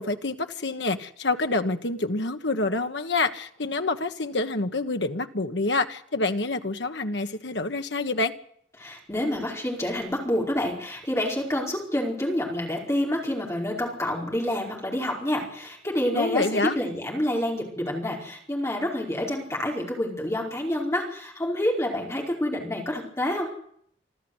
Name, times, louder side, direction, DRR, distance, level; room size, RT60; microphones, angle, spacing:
voice 1, 0.0-8.3 16.1-16.8, left 3 dB, 70° left, 1.5 m, -27 dB
voice 2, 8.8-23.5, left 1 dB, 15° left, 5.0 m, -28 dB
26.0 x 13.5 x 8.2 m
head